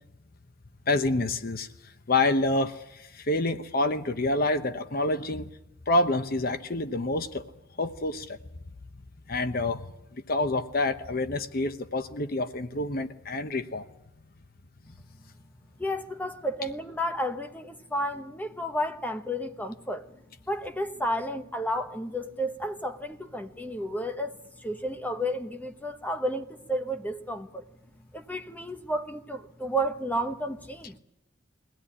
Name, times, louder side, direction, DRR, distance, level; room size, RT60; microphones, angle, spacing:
voice 1, 0.9-1.7 2.1-2.7 3.3-5.5 5.9-7.4 7.8-8.3 9.3-9.8 10.3-13.8, left 2 dB, 50° left, 1.0 m, -27 dB
voice 2, 15.8-20.1 20.5-27.6 28.1-31.0, equal, 10° left, 1.1 m, -32 dB
22.0 x 16.5 x 10.0 m
head